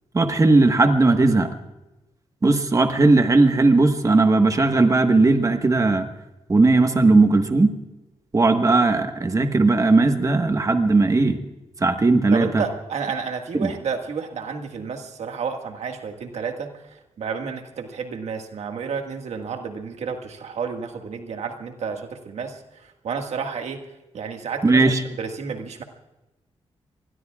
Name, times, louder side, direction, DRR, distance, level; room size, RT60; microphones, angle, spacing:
voice 1, 0.1-1.5 2.4-6.1 6.5-7.7 8.3-11.4 11.8-12.6 13.5-13.7 24.6-25.0, right 3 dB, 30° right, 6 dB, 1.4 m, -17 dB
voice 2, 12.3-23.8 24.1-25.8, right 6 dB, 85° right, 4 dB, 1.8 m, -31 dB
27.5 x 21.0 x 2.4 m, 1.0 s
cardioid pair, 85°, 11 cm